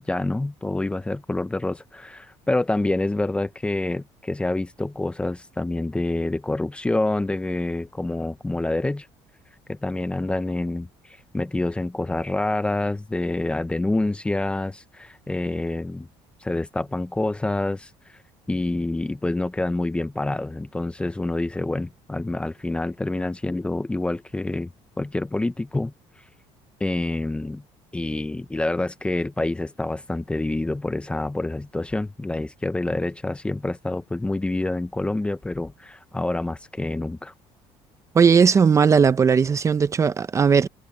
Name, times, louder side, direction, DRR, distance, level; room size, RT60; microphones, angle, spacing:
voice 1, 0.0-9.1 9.7-16.1 16.4-17.9 18.5-24.7 25.0-25.9 26.8-27.6 27.9-37.3, left 2 dB, 10° left, 0.7 m, -27 dB
voice 2, 38.1-40.7, right 6 dB, 25° right, 0.7 m, -17 dB
cardioid pair, 130°, 12 cm